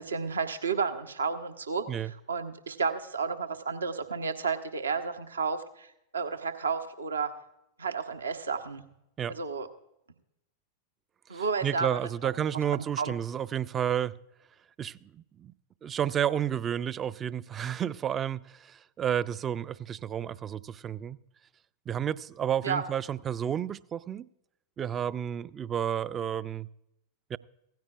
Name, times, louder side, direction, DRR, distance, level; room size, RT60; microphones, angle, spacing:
voice 1, 0.0-1.9 2.3-5.9 6.1-7.3 7.8-8.8 9.3-9.7 11.3-12.3 12.7-13.1 22.6-22.8, right 5 dB, 75° right, 0.9 m, -32 dB
voice 2, 11.3-14.2 14.8-15.5 15.8-21.2 21.9-24.3 24.8-26.7 27.3-27.4, right 9 dB, 25° right, 0.4 m, -31 dB
16.5 x 15.0 x 2.4 m
figure-of-eight pair, 90°, 0 cm